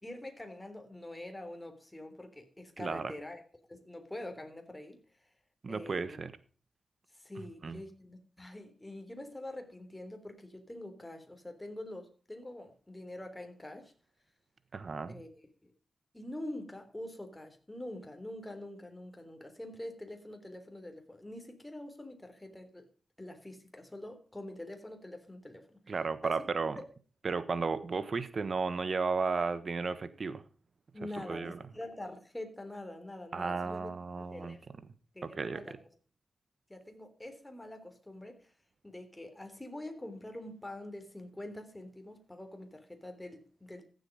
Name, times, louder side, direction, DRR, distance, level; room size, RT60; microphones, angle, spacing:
voice 1, 0.0-3.4 3.7-5.0 5.7-6.2 7.1-13.9 15.1-15.3 15.6-15.7 16.1-22.9 23.2-25.8 26.2-26.4 30.9-33.9 34.2-34.9 35.1-35.8 36.7-38.5 38.8-43.8, left 1 dB, 15° left, 3.6 m, -45 dB
voice 2, 2.8-3.1 5.6-6.3 7.6-7.8 14.7-15.2 25.9-26.8 27.2-30.4 31.2-31.6 33.3-34.6 35.2-35.6, right 4 dB, 60° right, 1.3 m, -34 dB
15.0 x 7.9 x 5.3 m
supercardioid pair, 45°, 0 cm